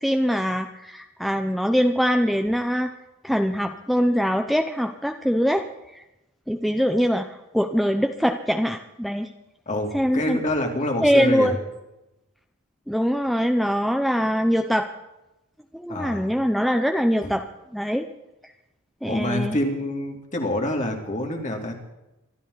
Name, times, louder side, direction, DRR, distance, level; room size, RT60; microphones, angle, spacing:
voice 1, 0.0-2.9 3.2-5.7 5.9-6.0 6.5-9.3 9.9-10.4 11.0-11.5 12.9-14.9 15.7-17.4 17.7-18.1 19.0-19.6, equal, ahead, 5 dB, 0.7 m, -23 dB
voice 2, 9.7-11.5 15.9-16.3 17.2-17.3 19.0-21.7, left 1 dB, 35° left, 2 dB, 2.9 m, -27 dB
24.5 x 13.0 x 4.0 m, 0.92 s
head